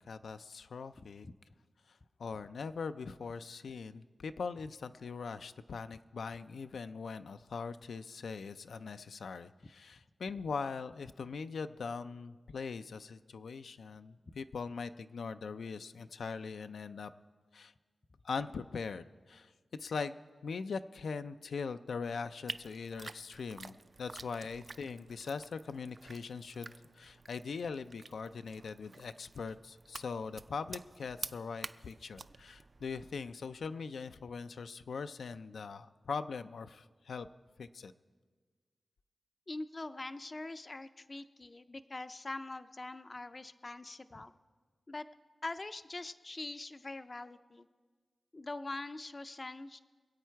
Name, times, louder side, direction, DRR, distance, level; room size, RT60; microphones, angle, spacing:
voice 1, 0.1-1.3 2.2-17.1 17.5-17.7 18.2-19.5 19.8-20.2 20.4-37.3 37.6-37.9, left 5 dB, 90° left, 10 dB, 0.4 m, -41 dB
sound 1, 22.5-33.3, right 3 dB, 40° right, 0.3 m, -49 dB
voice 2, 39.5-44.3 44.9-45.0 45.4-47.7 48.3-49.8, left 2 dB, 30° left, 12 dB, 0.4 m, -43 dB
25.0 x 8.4 x 4.5 m, 1.5 s
wide cardioid pair, 150°, 0 cm